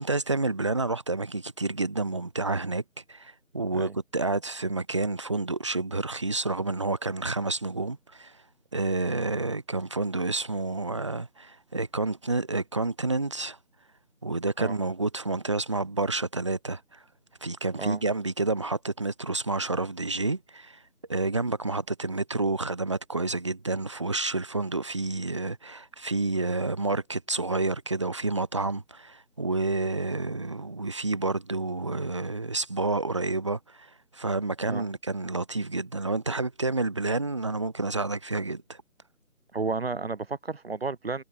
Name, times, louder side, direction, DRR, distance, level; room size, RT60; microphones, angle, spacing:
voice 1, 0.0-2.8 3.1-8.3 8.7-13.6 14.2-17.0 17.4-20.8 21.1-38.8, right 3 dB, 20° right, 1.4 m, -29 dB
voice 2, 39.5-41.2, right 4 dB, 45° right, 4.5 m, -32 dB
figure-of-eight pair, 170°, 42 cm